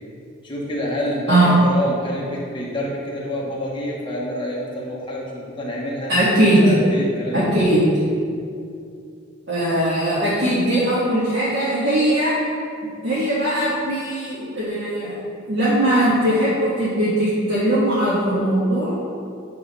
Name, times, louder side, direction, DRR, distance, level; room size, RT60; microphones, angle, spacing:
voice 1, 0.4-6.1 6.6-7.6, equal, 25° left, -4 dB, 1.3 m, -27 dB
voice 2, 6.1-6.6 7.3-7.8 9.5-12.4 13.0-15.2 15.4-18.9, right 1 dB, 60° right, -10 dB, 1.6 m, -19 dB
9.0 x 3.8 x 5.5 m, 2.4 s
head